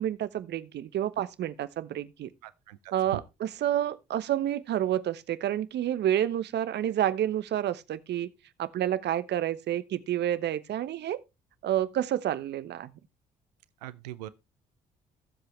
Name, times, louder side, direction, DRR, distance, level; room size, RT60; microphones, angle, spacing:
voice 1, 0.0-2.3 2.9-8.3 8.6-11.2 11.6-12.9, right 11 dB, 60° right, 1.0 m, -29 dB
voice 2, 2.4-2.8 13.8-14.3, right 15 dB, 85° right, 0.6 m, -42 dB
16.0 x 7.7 x 3.2 m
hypercardioid pair, 50°, 20 cm